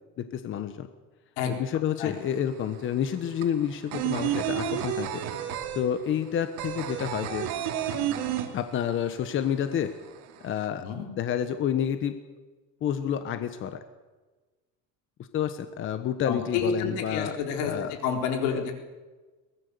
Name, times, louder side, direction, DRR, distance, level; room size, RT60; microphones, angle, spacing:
voice 1, 0.2-0.9 1.5-5.2 5.7-7.5 8.5-9.9 10.4-10.9 11.1-12.2 12.8-13.8 15.3-17.9 18.5-18.7, left 9 dB, 35° left, 9 dB, 1.2 m, -29 dB
sound 1, 2.2-2.3 2.5-9.1 9.4-9.5 9.8-10.6, right 10 dB, 85° right, 2.9 m, -30 dB
voice 2, 16.2-17.7 18.0-18.7, left 6 dB, 85° left, 3 dB, 4.1 m, -29 dB
22.5 x 19.0 x 6.9 m, 1.3 s
cardioid pair, 160°, 34 cm